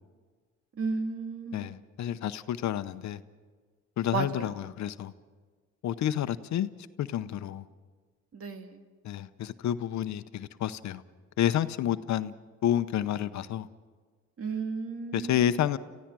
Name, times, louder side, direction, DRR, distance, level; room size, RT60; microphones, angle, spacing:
voice 1, 0.8-1.7 4.1-4.5 8.3-8.8 14.4-15.3, right 5 dB, 50° right, 1.8 m, -33 dB
voice 2, 1.5-3.2 4.0-5.1 5.8-6.7 7.0-7.7 9.0-11.0 11.4-12.3 12.6-13.7 15.1-15.8, left 11 dB, 65° left, 0.8 m, -29 dB
28.5 x 15.5 x 6.1 m
cardioid pair, 90°, 30 cm